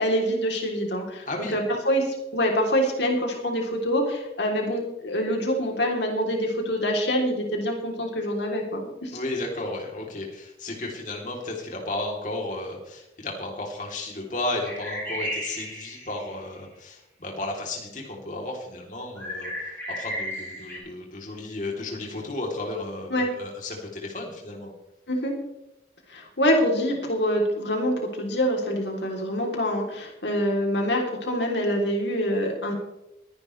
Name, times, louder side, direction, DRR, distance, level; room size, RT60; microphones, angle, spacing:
voice 1, 0.0-1.2 1.5-9.1 23.1-23.3 25.1-25.3 26.1-32.7, equal, 75° left, 1 dB, 3.4 m, -25 dB
voice 2, 9.1-24.7, left 2 dB, 45° left, 0 dB, 3.3 m, -33 dB
sound 1, 14.6-16.4 19.2-20.8, equal, 10° left, 5.9 m, -34 dB
23.0 x 10.5 x 3.3 m, 0.88 s
head